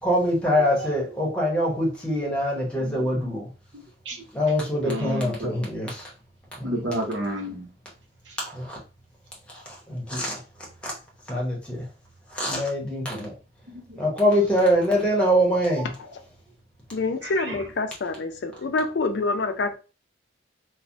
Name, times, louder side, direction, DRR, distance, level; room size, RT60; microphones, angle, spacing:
voice 1, 0.0-3.5 4.3-6.1 6.6-6.7 8.4-8.8 9.5-10.4 10.8-10.9 11.3-11.9 12.3-13.3 13.9-15.9, equal, 5° left, -2 dB, 0.9 m, -24 dB
voice 2, 3.7-4.2 4.8-5.6 6.6-7.7 8.3-8.4 13.7-14.0 17.2-17.6, equal, 75° right, 1 dB, 0.8 m, -32 dB
voice 3, 16.9-19.8, left 3 dB, 60° left, 7 dB, 0.4 m, -26 dB
3.1 x 2.1 x 2.6 m, 0.33 s
head